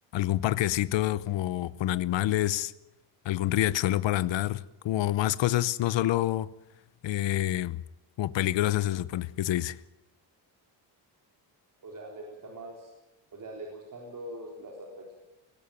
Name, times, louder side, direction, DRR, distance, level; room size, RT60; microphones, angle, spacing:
voice 1, 0.1-2.7 3.2-6.5 7.0-7.8 8.2-9.8, left 14 dB, 70° left, 0.9 m, -27 dB
voice 2, 11.8-12.9 13.3-15.1, right 1 dB, 40° right, 4.0 m, -42 dB
20.0 x 16.5 x 9.1 m
cardioid pair, 165°, 47 cm